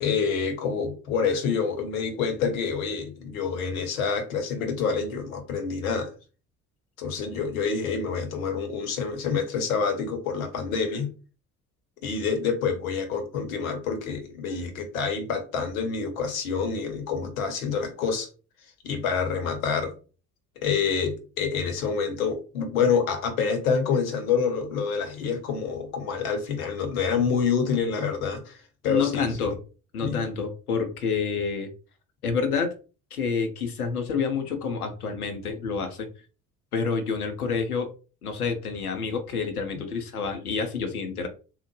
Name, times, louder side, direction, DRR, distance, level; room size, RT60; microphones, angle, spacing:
voice 1, 0.0-6.1 7.0-11.1 12.0-18.3 18.8-19.9 20.6-28.6 28.8-29.5 30.0-30.2, left 5 dB, 70° left, 0.9 m, -27 dB
voice 2, 28.9-29.6 29.9-31.7 32.2-32.7 33.1-36.1 36.7-37.9 38.2-41.3, left 5 dB, 85° left, 0.7 m, -28 dB
3.6 x 2.0 x 3.1 m
figure-of-eight pair, 55°, 44 cm